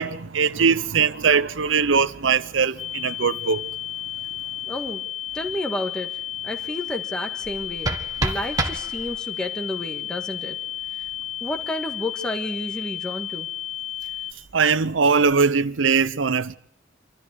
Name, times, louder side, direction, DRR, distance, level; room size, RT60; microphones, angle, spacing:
voice 1, 0.0-3.6 14.5-16.6, right 5 dB, 90° right, 0.7 m, -21 dB
sound 1, 2.8-14.3, left 12 dB, 30° left, 1.3 m, -33 dB
voice 2, 4.7-5.0 5.3-6.1 6.4-10.5 11.4-13.5, left 1 dB, 5° left, 1.7 m, -31 dB
sound 2, 7.4-9.4, right 2 dB, 20° right, 1.6 m, -29 dB
26.0 x 13.5 x 8.3 m
head